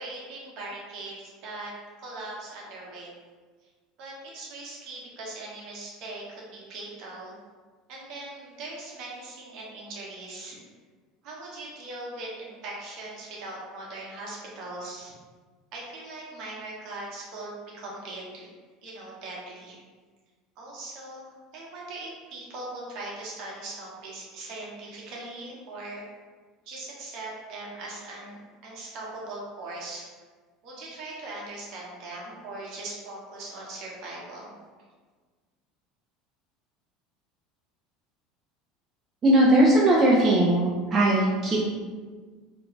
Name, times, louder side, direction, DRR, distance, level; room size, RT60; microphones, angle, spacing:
voice 1, 0.0-1.7 2.0-3.1 3.6-3.7 4.0-7.4 7.9-10.6 11.2-15.1 15.7-18.5 18.8-19.8 20.6-26.0 26.7-30.0 30.6-34.5, right 2 dB, 60° right, -4 dB, 0.8 m, -40 dB
voice 2, 39.2-41.6, right 1 dB, 35° right, -4 dB, 0.4 m, -19 dB
2.4 x 2.1 x 3.1 m, 1.5 s
hypercardioid pair, 90°, 0 cm